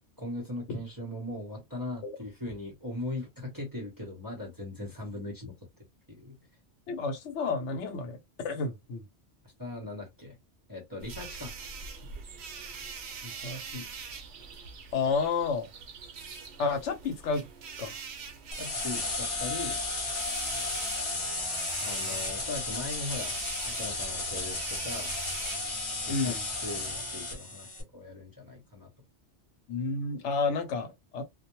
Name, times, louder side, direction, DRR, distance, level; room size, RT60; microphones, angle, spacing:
voice 1, 0.2-5.5 6.1-6.4 9.4-10.4 10.7-11.5 18.6-19.8 21.8-23.3 23.6-25.1 26.1-28.9, left 2 dB, 20° right, 0.7 m, -39 dB
voice 2, 6.9-8.2 8.4-9.0 13.2-13.9 14.9-15.7 16.6-17.5 17.8-18.0 26.1-26.4 29.7-31.2, left 4 dB, 85° left, 1.0 m, -31 dB
sound 1, 11.0-25.8, right 5 dB, 70° right, 0.8 m, -44 dB
sound 2, 18.5-27.8, left 2 dB, 30° left, 0.7 m, -34 dB
2.2 x 2.2 x 2.9 m
omnidirectional pair, 1.2 m